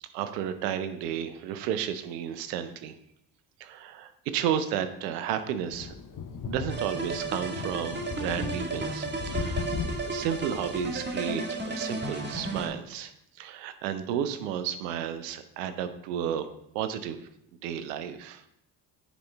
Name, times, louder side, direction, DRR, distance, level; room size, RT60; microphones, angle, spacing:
voice 1, 0.0-2.9 3.6-5.9 6.5-9.6 10.0-13.1 13.4-16.5 16.7-17.2 17.6-18.4, right 9 dB, 85° right, 10 dB, 0.7 m, -32 dB
sound 1, 5.7-11.2, left 5 dB, 45° left, 0.8 m, -37 dB
sound 2, 6.7-12.7, right 3 dB, 25° right, 1.5 m, -34 dB
9.7 x 4.0 x 3.3 m, 0.74 s
hypercardioid pair, 50°, 46 cm